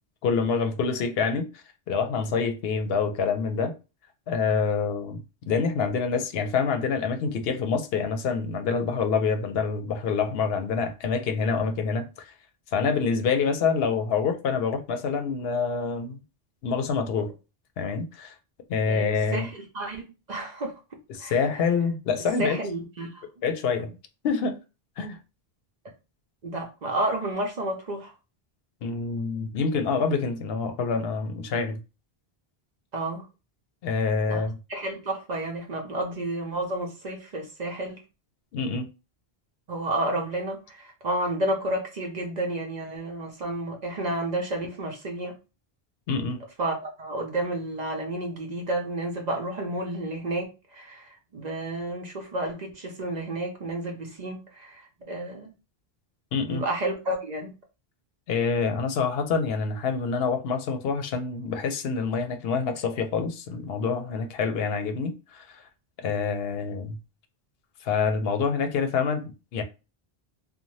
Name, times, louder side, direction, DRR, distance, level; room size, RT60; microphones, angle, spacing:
voice 1, 0.2-3.7 4.3-12.1 12.7-16.2 16.6-17.3 17.8-18.3 18.7-19.5 21.1-22.6 23.4-23.9 24.2-24.5 25.0-25.2 28.8-31.8 33.8-34.6 38.5-38.9 46.1-46.4 56.3-56.6 58.3-65.6 66.0-67.0 67.8-69.6, left 5 dB, 75° left, 0.8 m, -26 dB
voice 2, 18.9-21.4 22.4-23.2 26.4-28.1 32.9-33.3 34.3-34.4 34.7-38.0 39.7-45.3 46.6-55.5 56.4-57.5, right 1 dB, 50° right, 0.7 m, -31 dB
2.7 x 2.2 x 3.0 m
omnidirectional pair, 1.0 m